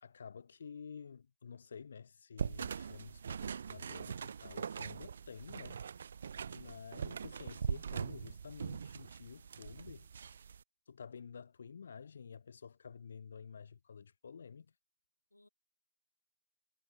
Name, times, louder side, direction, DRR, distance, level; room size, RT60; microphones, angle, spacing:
voice 1, 0.0-5.8 6.5-10.1 10.9-14.7, left 6 dB, 35° left, 0.8 m, -51 dB
sound 1, 2.4-10.6, right 7 dB, 35° right, 0.3 m, -42 dB
voice 2, 6.3-7.0 15.3-15.5, left 2 dB, 85° left, 5.5 m, -63 dB
figure-of-eight pair, 160°, 0 cm